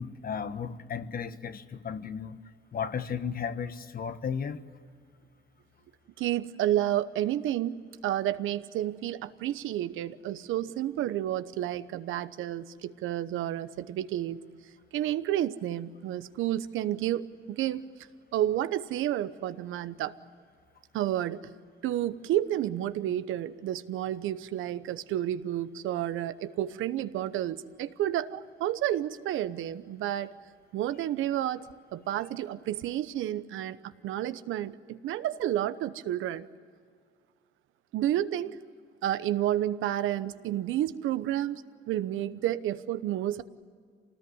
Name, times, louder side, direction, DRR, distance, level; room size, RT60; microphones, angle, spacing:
voice 1, 0.0-2.4 2.7-4.6, left 6 dB, 45° left, 11 dB, 1.3 m, -34 dB
voice 2, 6.2-7.8 8.0-14.4 14.9-17.9 18.3-20.1 20.9-21.4 21.8-30.3 30.7-31.6 31.9-36.5 37.9-38.6 39.0-43.4, right 12 dB, 85° right, 13 dB, 0.9 m, -30 dB
26.0 x 19.5 x 9.6 m, 2.1 s
cardioid pair, 90°, 20 cm